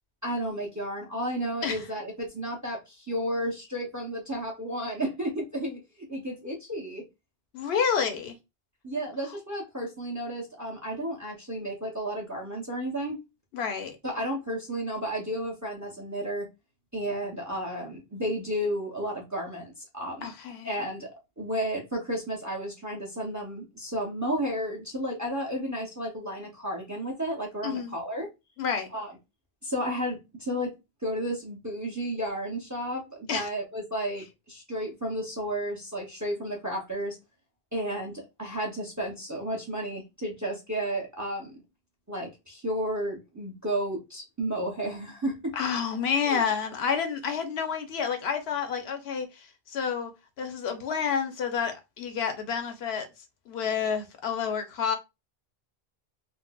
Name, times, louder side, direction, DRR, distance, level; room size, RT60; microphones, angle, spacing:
voice 1, 0.2-7.0 8.8-13.2 14.0-16.5 16.9-20.3 20.6-28.3 28.9-29.1 29.6-30.7 31.0-37.2 37.7-41.6 42.1-45.6 46.2-46.4, equal, 20° right, 0.5 m, -32 dB
voice 2, 7.5-8.4 9.2-9.3 13.5-14.0 20.2-20.7 27.6-27.9 28.6-28.9 33.3-33.5 45.6-50.1 50.4-53.1 53.5-55.0, left 7 dB, 80° left, 0.9 m, -29 dB
3.9 x 2.0 x 2.2 m
omnidirectional pair, 1.0 m